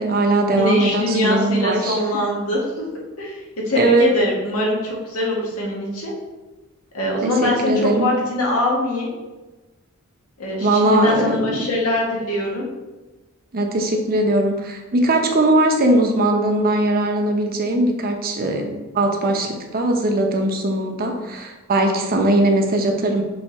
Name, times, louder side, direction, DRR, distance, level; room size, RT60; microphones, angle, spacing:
voice 1, 0.0-2.0 3.8-4.1 7.2-8.1 10.6-11.7 13.5-18.7 18.9-23.2, right 1 dB, 45° right, 3 dB, 0.9 m, -20 dB
voice 2, 0.6-2.9 3.2-6.1 6.9-9.1 10.4-12.7, left 1 dB, 85° left, -3 dB, 1.7 m, -22 dB
6.4 x 3.5 x 4.4 m, 1.1 s
head